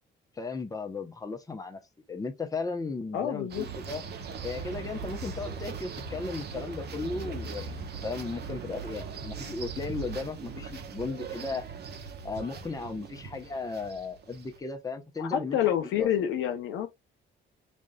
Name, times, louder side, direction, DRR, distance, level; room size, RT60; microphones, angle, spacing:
voice 1, 0.4-1.8 2.1-4.0 4.4-11.7 12.2-15.7 16.0-16.1, left 3 dB, 20° left, 0.8 m, -36 dB
voice 2, 3.1-3.7 15.2-16.9, left 10 dB, 90° left, 0.7 m, -28 dB
sound 1, 3.5-14.6, right 5 dB, 55° right, 0.8 m, -40 dB
5.2 x 2.4 x 2.3 m
cardioid pair, 90°, 20 cm